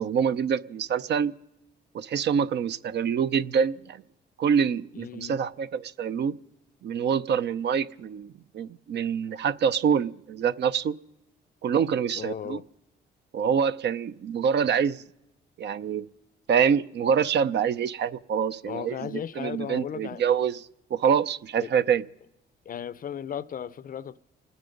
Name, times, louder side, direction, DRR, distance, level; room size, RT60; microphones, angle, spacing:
voice 1, 0.0-1.3 1.9-4.0 4.4-6.4 6.8-11.0 11.6-12.6 13.3-15.0 15.6-16.1 16.5-20.6 20.9-22.0, right 7 dB, 60° right, 0.6 m, -26 dB
voice 2, 4.9-5.4 12.1-12.7 18.6-20.2 21.6-21.7 22.7-24.2, left 9 dB, 45° left, 0.5 m, -36 dB
28.5 x 9.7 x 5.1 m
cardioid pair, 90°, 20 cm